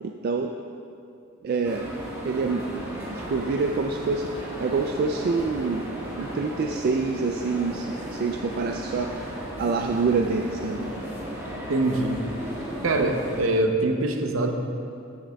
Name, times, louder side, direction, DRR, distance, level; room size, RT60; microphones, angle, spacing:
voice 1, 0.0-0.6 1.4-1.9 2.2-5.9 6.2-10.9, right 4 dB, 45° right, 3 dB, 0.3 m, -27 dB
sound 1, 1.6-13.4, right 1 dB, 10° right, 1.4 m, -35 dB
voice 2, 11.7-12.2 12.8-14.5, right 2 dB, 70° right, 5 dB, 0.7 m, -23 dB
14.0 x 6.5 x 2.3 m, 2.5 s
head